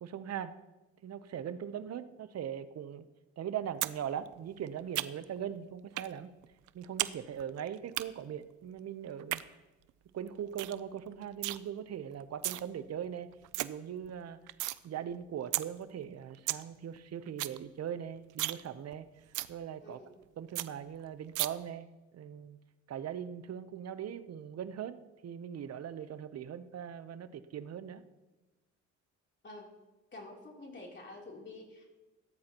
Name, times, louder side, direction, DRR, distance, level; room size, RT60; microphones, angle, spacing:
voice 1, 0.0-0.6 1.0-3.1 3.4-6.3 6.7-9.4 10.1-13.3 13.6-14.4 14.8-19.1 19.5-20.0 20.4-21.9 22.1-22.6 22.9-25.0 25.2-28.0, right 9 dB, 55° right, 12 dB, 0.8 m, -40 dB
sound 1, 3.8-4.0 4.3-5.4 6.0-6.1 6.4-7.1 7.4-8.0 9.1-9.4 9.9-10.0 10.3-10.4 10.6-10.8 11.1-11.6 12.2-12.6 13.0-13.1 13.3-13.7 14.0-14.8 15.1-15.2 15.5-15.6 16.0-16.1 16.3-16.6 17.0-17.1 17.3-17.6 17.9-18.0 18.3-18.6 18.9-19.0 19.3-19.5 19.9-20.0 20.2-20.3 20.5-20.7 21.3-21.5, right 17 dB, 90° right, 0.5 m, -33 dB
voice 2, 19.8-20.1 29.4-29.7 30.1-31.9, left 2 dB, 35° left, -1 dB, 3.4 m, -48 dB
16.0 x 13.0 x 3.0 m, 1.1 s
cardioid pair, 90°, 30 cm